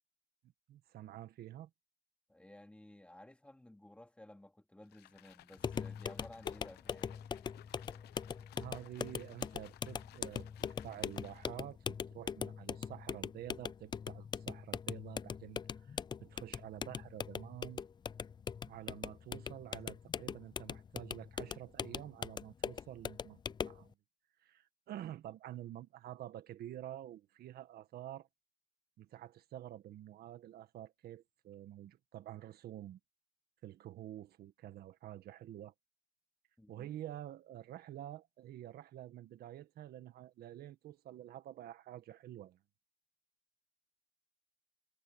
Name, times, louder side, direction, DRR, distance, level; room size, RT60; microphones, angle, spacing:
voice 1, 0.7-1.7 8.6-17.8 18.6-23.9 24.4-28.3 29.0-33.0 33.6-35.7 36.7-42.6, right 12 dB, 65° right, 1.7 m, -49 dB
voice 2, 2.3-7.2 36.6-36.9, left 1 dB, 5° left, 2.5 m, -56 dB
sound 1, 4.8-11.7, left 15 dB, 75° left, 0.9 m, -60 dB
sound 2, 5.6-23.8, left 7 dB, 25° left, 0.4 m, -41 dB
cardioid pair, 110°, 17 cm